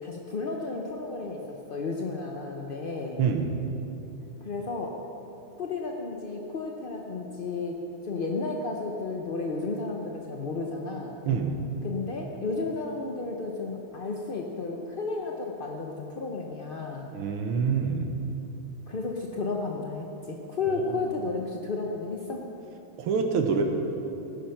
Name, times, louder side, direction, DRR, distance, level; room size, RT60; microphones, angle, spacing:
voice 1, 0.0-3.2 4.4-5.0 5.6-11.1 11.8-17.1 18.9-22.4, left 3 dB, 50° left, 0 dB, 0.6 m, -33 dB
voice 2, 3.2-3.5 11.3-11.6 17.1-18.1 20.7-21.0 23.0-23.6, right 6 dB, 85° right, 4 dB, 2.0 m, -26 dB
17.5 x 10.5 x 5.9 m, 2.9 s
omnidirectional pair, 2.3 m